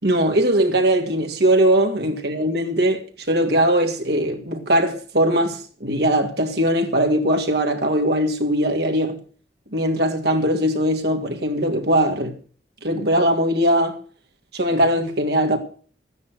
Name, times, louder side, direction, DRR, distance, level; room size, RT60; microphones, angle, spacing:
voice 1, 0.0-9.2 9.7-12.4 12.8-14.0 14.5-15.6, right 1 dB, 65° right, 2.6 m, -20 dB
13.5 x 9.7 x 6.4 m
head